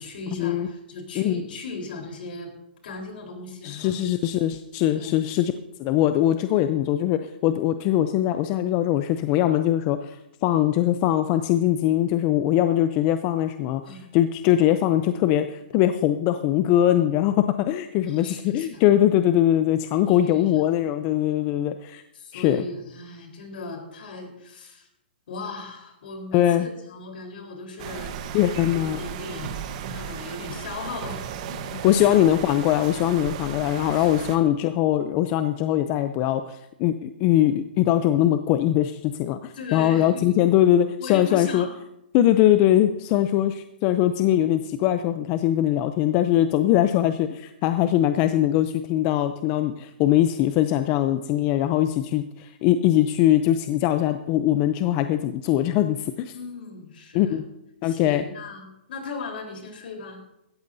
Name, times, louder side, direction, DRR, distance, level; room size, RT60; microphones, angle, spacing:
voice 1, 0.0-2.5 2.8-3.9 4.9-5.2 13.8-14.1 18.1-18.8 20.1-20.5 22.1-24.9 25.3-28.1 28.6-29.6 29.9-31.6 32.0-32.2 33.9-34.1 39.5-40.4 41.0-41.7 56.3-57.4 57.8-60.2, left 3 dB, 65° left, 3 dB, 3.9 m, -37 dB
voice 2, 3.6-5.5 5.8-10.1 10.4-13.8 14.1-22.0 22.3-22.6 26.3-26.7 28.3-29.0 31.8-41.7 42.1-56.3 57.1-57.4 57.8-58.2, left 12 dB, 30° left, 10 dB, 0.5 m, -21 dB
sound 1, 27.8-34.4, right 8 dB, 40° right, 1.1 m, -35 dB
17.0 x 14.0 x 2.7 m, 0.87 s
hypercardioid pair, 155°, 6 cm